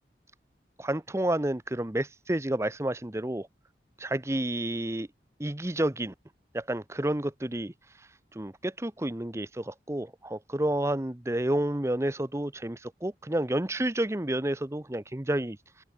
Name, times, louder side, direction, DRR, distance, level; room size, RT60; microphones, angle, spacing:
voice 1, 0.8-3.5 4.0-5.1 5.4-6.1 6.5-7.7 8.0-15.6, right 1 dB, 15° right, 0.8 m, -30 dB
open air
head